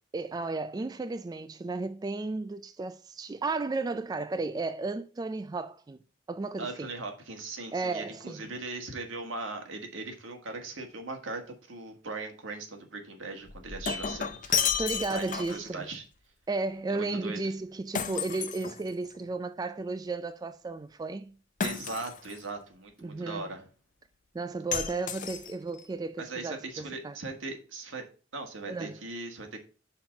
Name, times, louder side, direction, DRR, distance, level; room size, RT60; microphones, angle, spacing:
voice 1, 0.1-6.0 6.3-6.9 7.7-8.5 14.8-15.9 16.5-21.3 23.0-23.5 24.3-27.2 28.7-29.0, right 3 dB, 20° right, 0.3 m, -34 dB
voice 2, 6.6-14.8 15.1-16.0 16.9-17.4 21.6-23.7 26.2-28.0 28.3-29.6, right 3 dB, 80° right, 1.6 m, -39 dB
Shatter, 13.5-15.7 18.0-19.2 21.6-22.4 24.7-25.8, left 7 dB, 45° left, 0.6 m, -32 dB
5.7 x 4.4 x 5.2 m
head